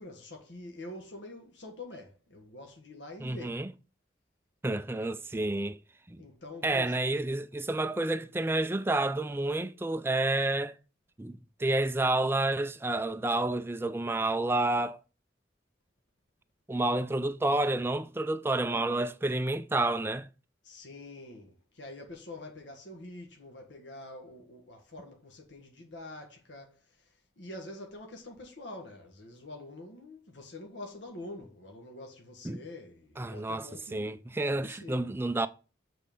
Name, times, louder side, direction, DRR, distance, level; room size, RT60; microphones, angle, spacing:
voice 1, 0.0-3.6 6.2-7.1 20.6-35.1, left 2 dB, 85° left, 1.5 m, -46 dB
voice 2, 3.2-3.7 4.6-5.8 6.1-6.2 6.6-10.7 11.2-15.0 16.7-20.3 32.4-32.6 33.2-35.5, right 2 dB, 15° right, 0.4 m, -29 dB
7.2 x 4.2 x 5.3 m
head